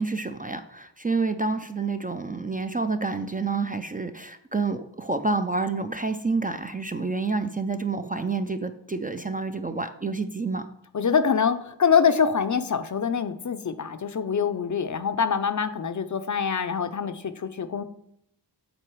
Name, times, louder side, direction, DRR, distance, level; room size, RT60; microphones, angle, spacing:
voice 1, 0.0-10.6, right 3 dB, 20° right, 7 dB, 0.4 m, -28 dB
voice 2, 10.9-17.8, left 6 dB, 40° left, 10 dB, 0.5 m, -24 dB
7.8 x 4.0 x 4.6 m, 0.74 s
wide cardioid pair, 65°, 44 cm